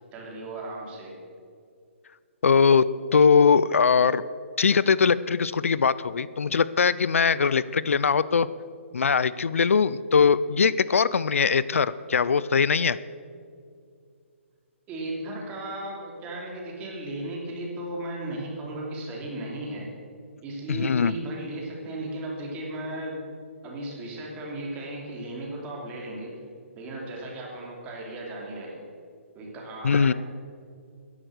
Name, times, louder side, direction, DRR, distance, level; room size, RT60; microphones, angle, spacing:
voice 1, 0.1-1.2 7.5-7.6 14.9-19.9 20.4-23.3 23.6-26.4 26.8-28.8 29.3-30.1, right 1 dB, 20° right, -2 dB, 3.0 m, -35 dB
voice 2, 2.4-2.8 3.1-4.2 4.6-8.5 8.9-13.0 20.7-21.1 29.8-30.1, left 6 dB, 85° left, 17 dB, 0.5 m, -21 dB
13.5 x 11.0 x 6.5 m, 2.3 s
hypercardioid pair, 155°, 7 cm